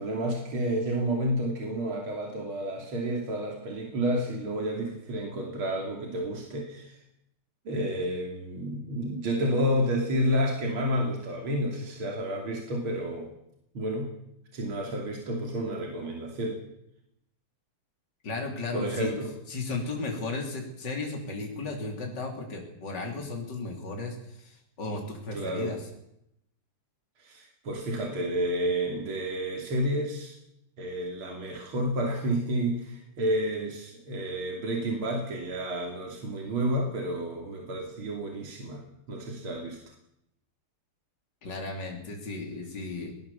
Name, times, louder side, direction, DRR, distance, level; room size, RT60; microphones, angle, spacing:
voice 1, 0.0-7.0 7.7-13.3 13.7-14.1 14.5-16.6 18.7-19.3 25.3-25.8 27.2-30.4 30.8-38.8 39.1-39.8, equal, 70° right, 1 dB, 3.7 m, -30 dB
voice 2, 18.2-19.1 19.5-25.8 41.4-43.1, left 3 dB, 50° left, 1 dB, 3.9 m, -35 dB
20.5 x 19.5 x 7.1 m, 0.79 s
omnidirectional pair, 2.4 m